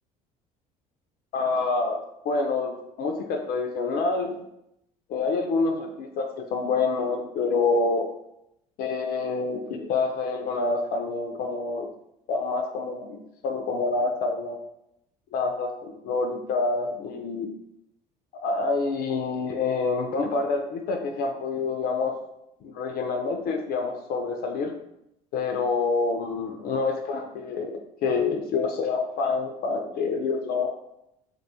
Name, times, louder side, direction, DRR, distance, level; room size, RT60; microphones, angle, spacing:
voice 1, 1.3-2.0 2.2-4.4 5.1-8.1 8.8-11.9 12.3-14.6 15.3-17.5 18.4-22.1 22.6-24.7 25.3-27.7 28.0-30.7, left 4 dB, 55° left, 3 dB, 0.4 m, -27 dB
2.6 x 2.2 x 2.6 m, 0.81 s
hypercardioid pair, 65°, 19 cm